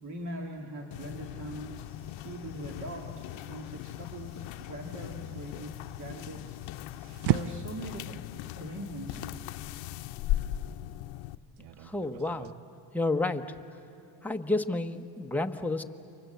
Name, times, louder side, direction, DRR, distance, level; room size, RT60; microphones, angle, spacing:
voice 1, 0.0-3.1 3.4-6.6 7.2-8.2 8.6-9.4, right 1 dB, 35° right, 1 dB, 2.4 m, -41 dB
sound 1, 0.9-11.4, left 14 dB, 65° left, 0.8 m, -38 dB
sound 2, 1.8-7.3, left 1 dB, 10° right, 7.8 m, -65 dB
sound 3, 5.0-12.5, right 12 dB, 55° right, 0.6 m, -37 dB
voice 2, 11.8-12.5 12.9-13.6 14.2-15.8, left 2 dB, 5° left, 4 dB, 1.0 m, -30 dB
29.0 x 25.0 x 8.0 m, 2.7 s
cardioid pair, 115°, 49 cm